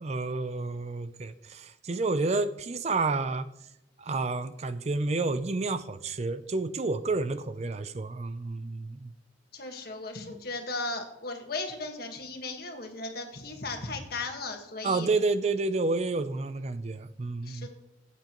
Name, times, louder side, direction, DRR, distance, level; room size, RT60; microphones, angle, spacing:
voice 1, 0.0-3.5 4.0-9.1 14.8-17.7, right 3 dB, 35° right, 12 dB, 0.4 m, -30 dB
voice 2, 9.5-15.1 17.4-17.7, left 3 dB, 55° left, 4 dB, 1.6 m, -36 dB
15.0 x 8.2 x 3.0 m, 0.81 s
head